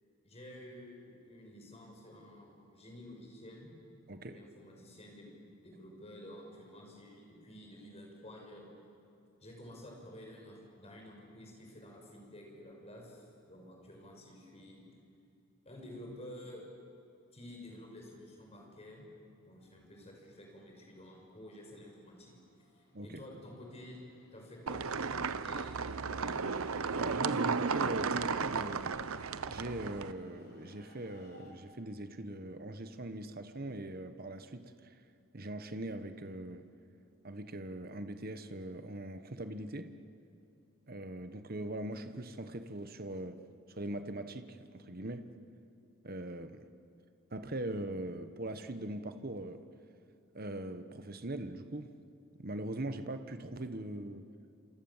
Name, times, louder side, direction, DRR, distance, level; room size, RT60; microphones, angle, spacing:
voice 1, 0.2-3.7 4.3-5.3 5.6-8.7 9.4-14.8 15.6-16.6 17.3-19.0 19.4-22.4 22.7-24.0 24.3-26.4, left 1 dB, 30° left, 0 dB, 6.4 m, -51 dB
voice 2, 4.1-4.4 22.9-23.2 27.0-29.0 29.5-35.0 35.3-36.7 37.2-40.0 40.9-43.4 43.7-45.3 46.0-46.7 47.3-49.7 50.3-51.9 52.4-54.3, right 1 dB, 45° right, 9 dB, 1.2 m, -41 dB
sound 1, 19.9-31.5, left 1 dB, 45° left, 4.5 m, -60 dB
sound 2, 24.7-30.1, right 5 dB, 80° right, 0.9 m, -34 dB
28.0 x 27.5 x 7.4 m, 2.6 s
head